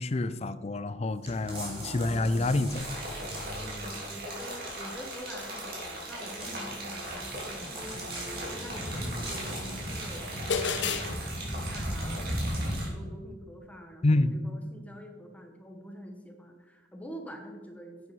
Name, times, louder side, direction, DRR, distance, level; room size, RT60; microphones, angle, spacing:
voice 1, 0.0-2.9 14.0-14.4, left 2 dB, 35° left, 14 dB, 0.5 m, -27 dB
sound 1, 1.3-4.2 6.2-10.4 11.0-11.1, right 1 dB, 30° right, 3.4 m, -41 dB
sound 2, 2.7-12.9, right 1 dB, 55° right, 3.4 m, -36 dB
voice 2, 3.6-12.2 12.7-18.1, equal, 10° left, 3 dB, 1.1 m, -46 dB
sound 3, 10.5-11.1, left 6 dB, 85° left, 0.7 m, -29 dB
10.5 x 8.5 x 4.7 m, 1.4 s
head